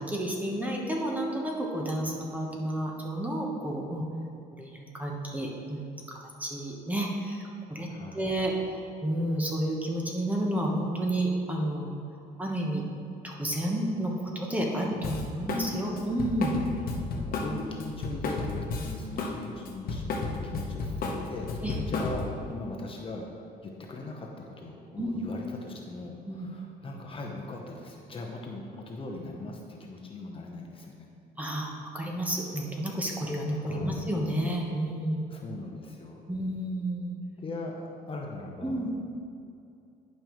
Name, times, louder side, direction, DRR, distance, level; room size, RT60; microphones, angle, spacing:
voice 1, 0.0-4.0 4.6-7.4 7.7-7.9 8.1-11.9 12.4-12.8 13.2-16.5 17.5-17.6 19.2-19.3 21.6-21.8 25.0-25.2 26.2-26.5 31.4-35.3 36.3-37.1 38.6-38.9, right 1 dB, 10° right, -1 dB, 1.1 m, -31 dB
voice 2, 7.9-8.2 15.4-15.8 17.1-31.1 33.5-34.1 35.3-36.2 37.4-38.8, left 2 dB, 30° left, 0 dB, 0.9 m, -40 dB
Drum kit, 15.0-15.7 16.0-19.4 19.6-22.4, left 3 dB, 60° left, 1.0 m, -32 dB
11.0 x 5.3 x 3.1 m, 2.6 s
cardioid pair, 110°, 17 cm